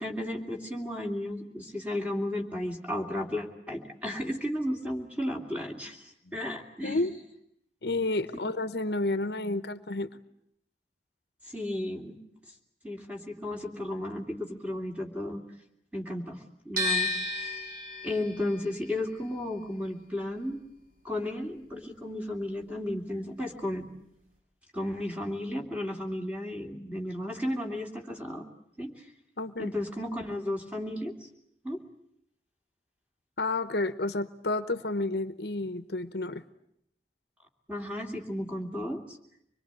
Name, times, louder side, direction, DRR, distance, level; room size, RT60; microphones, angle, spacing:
voice 1, 0.0-7.0 11.5-12.2 12.8-15.4 15.9-17.1 17.4-17.5 18.0-20.6 21.0-23.9 24.7-28.4 28.8-29.1 29.6-31.3 31.6-31.8 37.7-39.2, left 1 dB, 10° right, 1 dB, 3.0 m, -34 dB
voice 2, 6.8-7.2 7.8-10.1 29.4-29.7 33.4-36.4, left 2 dB, 70° left, 12 dB, 0.9 m, -30 dB
sound 1, 16.8-22.8 23.1-24.4, left 2 dB, 55° right, 7.3 m, -35 dB
25.0 x 22.0 x 9.1 m, 0.75 s
head